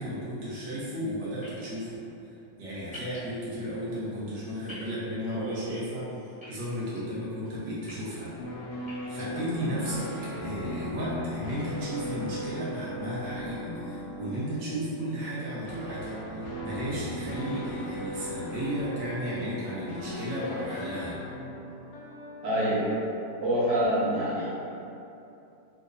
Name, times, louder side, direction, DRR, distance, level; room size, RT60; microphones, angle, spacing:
voice 1, 0.0-2.0 2.6-6.1 6.5-8.3 9.1-10.1 10.4-21.2, equal, 80° right, -9 dB, 1.6 m, -34 dB
sound 1, 1.4-1.6 2.9-3.2 4.7-4.9 6.4-7.0 7.6-7.9 8.8-9.2, left 1 dB, 5° right, 0.9 m, -45 dB
sound 2, 8.4-23.1, left 1 dB, 70° left, 1.1 m, -38 dB
voice 2, 22.4-22.8 23.4-24.5, right 1 dB, 45° right, -10 dB, 1.2 m, -25 dB
4.3 x 2.5 x 2.5 m, 2.8 s
omnidirectional pair, 2.0 m